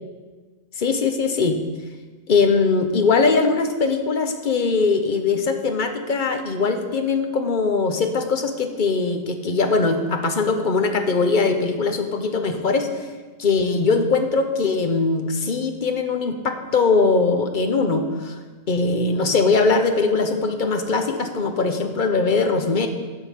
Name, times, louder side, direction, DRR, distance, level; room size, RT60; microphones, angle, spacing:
voice 1, 0.8-1.6 2.3-12.9 13.4-18.4 18.7-22.9, left 4 dB, 45° left, 6 dB, 1.0 m, -21 dB
10.0 x 5.2 x 7.4 m, 1.4 s
omnidirectional pair, 1.2 m